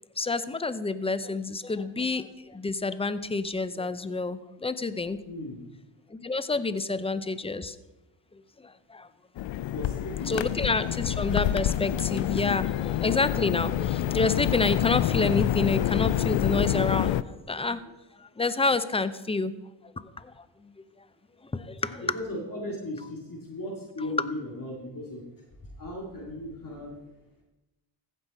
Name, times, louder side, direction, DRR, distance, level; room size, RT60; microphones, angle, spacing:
voice 1, 0.2-5.2 6.1-7.8 8.3-9.1 9.4-9.5 10.3-17.8 18.1-19.5 19.8-21.0 21.4-22.1 24.0-24.3, left 3 dB, 10° left, 14 dB, 0.6 m, -29 dB
voice 2, 5.3-5.6 9.7-10.4 15.1-15.4 21.8-25.2 25.7-27.0, left 1 dB, 40° left, -2 dB, 2.3 m, -37 dB
sound 1, 9.4-17.2, left 12 dB, 65° left, 0.5 m, -27 dB
15.0 x 5.5 x 4.2 m, 1.0 s
cardioid pair, 55°, 49 cm